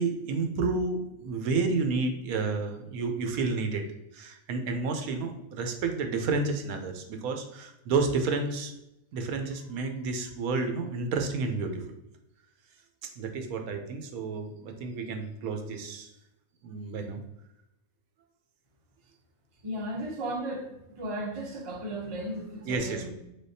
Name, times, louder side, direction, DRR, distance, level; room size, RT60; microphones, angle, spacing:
voice 1, 0.0-3.8 4.1-8.7 9.1-11.8 13.2-16.1 16.6-17.2 22.7-23.1, right 4 dB, 85° right, 5 dB, 1.1 m, -30 dB
voice 2, 19.6-20.7 21.0-23.1, right 1 dB, 40° right, 1 dB, 0.5 m, -35 dB
3.8 x 3.4 x 2.7 m, 0.87 s
omnidirectional pair, 1.5 m